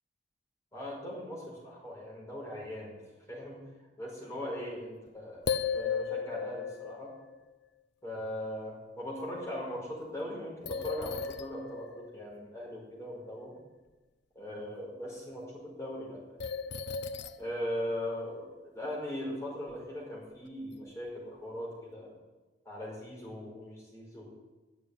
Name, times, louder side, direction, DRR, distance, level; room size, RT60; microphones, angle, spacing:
voice 1, 0.7-3.0 3.3-3.6 4.0-7.1 8.0-13.6 14.4-16.4 17.4-22.1 22.7-24.3, left 1 dB, 15° left, -4 dB, 5.2 m, -39 dB
sound 1, 5.1-5.2 5.5-7.4 10.7-12.4 16.4-18.3, left 6 dB, 60° left, 0.6 m, -35 dB
11.0 x 7.5 x 9.7 m, 1.2 s
head